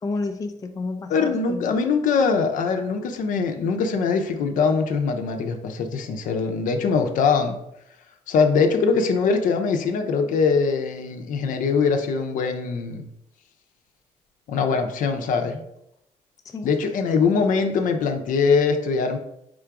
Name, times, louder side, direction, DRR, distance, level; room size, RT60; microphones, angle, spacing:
voice 1, 0.0-1.8 16.4-16.7, left 3 dB, 25° left, 6 dB, 0.4 m, -31 dB
voice 2, 1.1-7.6 8.3-13.1 14.5-15.6 16.6-19.2, left 5 dB, 65° left, 6 dB, 0.6 m, -22 dB
3.7 x 2.5 x 4.6 m, 0.79 s
cardioid pair, 85°, 14 cm